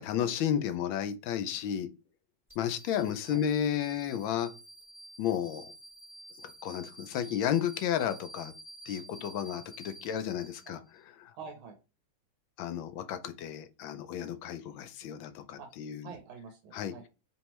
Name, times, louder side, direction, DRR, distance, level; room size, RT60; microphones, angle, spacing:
voice 1, 0.1-1.9 2.6-4.5 5.2-5.7 6.4-8.5 8.9-10.8 11.2-11.3 12.6-16.1 16.7-16.9, left 9 dB, 80° left, 1.3 m, -32 dB
sound 1, 2.5-11.0, right 1 dB, 10° right, 1.1 m, -50 dB
voice 2, 2.9-3.4 10.7-10.8 11.3-11.8 15.6-15.7 16.0-17.1, right 5 dB, 90° right, 1.7 m, -47 dB
4.5 x 3.5 x 3.0 m
omnidirectional pair, 2.2 m